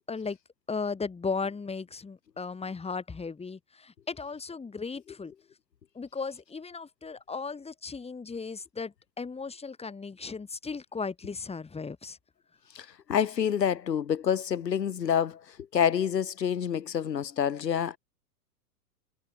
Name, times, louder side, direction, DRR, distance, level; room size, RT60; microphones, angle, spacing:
voice 1, 0.7-5.3 5.9-12.2, left 4 dB, 10° left, 4.5 m, -36 dB
voice 2, 12.7-18.0, left 8 dB, 85° left, 1.5 m, -28 dB
hypercardioid pair, 105°, 48 cm